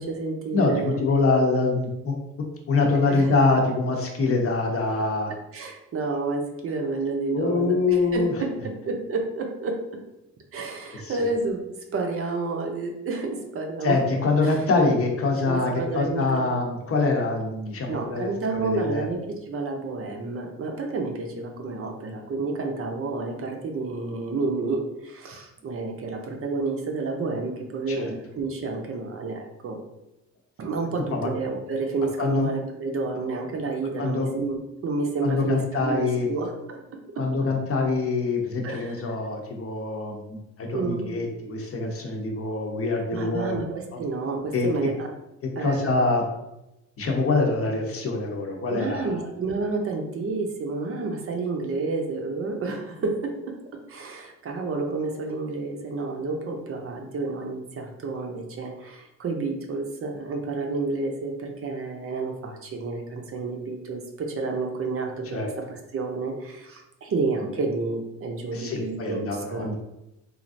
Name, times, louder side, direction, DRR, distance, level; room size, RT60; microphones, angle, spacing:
voice 1, 0.0-1.0 3.1-3.3 5.3-9.8 10.5-11.6 11.9-14.0 14.4-14.6 15.4-16.6 17.9-29.8 30.6-36.8 38.6-39.0 40.7-41.1 43.1-45.1 45.6-45.9 48.7-53.6 53.9-69.7, right 3 dB, 50° right, 2 dB, 0.6 m, -30 dB
voice 2, 0.5-2.2 2.7-5.3 7.3-8.3 11.0-11.1 13.8-19.1 27.9-28.1 31.1-31.3 32.2-32.5 34.0-34.3 35.2-36.3 37.2-43.6 43.9-44.0 44.5-44.7 45.6-46.2 47.0-49.2 65.3-65.5 68.5-69.8, left 3 dB, 50° left, 1 dB, 0.7 m, -24 dB
3.2 x 2.4 x 2.5 m, 0.91 s
cardioid pair, 90°, 30 cm